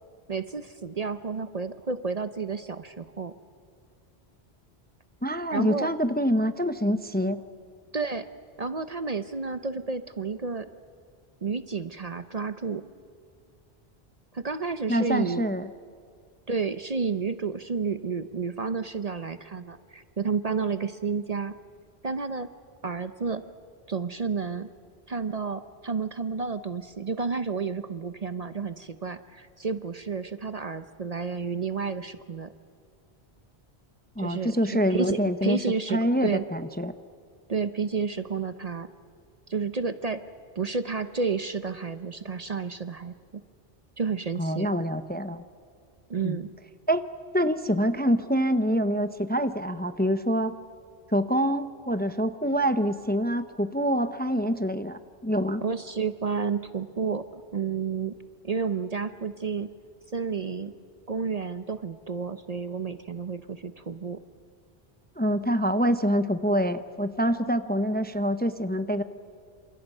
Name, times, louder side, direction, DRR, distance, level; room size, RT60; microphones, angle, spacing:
voice 1, 0.3-3.3 5.5-5.9 7.9-8.3 8.6-10.7 11.4-12.8 14.3-15.4 16.5-21.6 22.0-22.5 22.8-23.4 23.9-24.7 25.1-32.5 34.2-36.4 37.5-38.9 39.5-40.2 40.6-43.1 44.0-44.8 46.1-46.5 55.6-58.1 58.4-59.7 60.1-60.7 61.1-64.2, right 5 dB, 40° right, 11 dB, 0.7 m, -31 dB
voice 2, 5.2-7.4 14.9-15.7 34.2-35.6 35.9-36.9 44.4-45.4 46.2-46.4 46.9-47.0 47.3-50.6 51.1-55.6 65.2-69.0, equal, 10° left, 10 dB, 0.6 m, -26 dB
29.5 x 27.0 x 5.5 m, 2.2 s
omnidirectional pair, 1.1 m